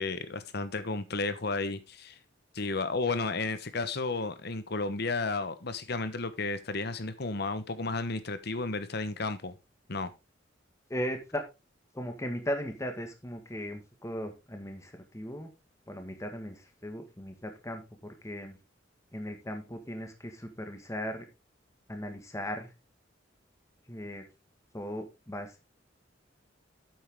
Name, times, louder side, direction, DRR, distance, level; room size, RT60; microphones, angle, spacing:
voice 1, 0.0-2.2 2.5-9.6 9.9-10.1, left 3 dB, 60° left, 1.2 m, -33 dB
voice 2, 10.9-11.4 11.9-15.5 15.9-18.6 19.1-21.2 21.9-22.7 23.9-24.2 24.7-25.7, equal, 15° left, 1.7 m, -37 dB
9.3 x 7.9 x 3.7 m
head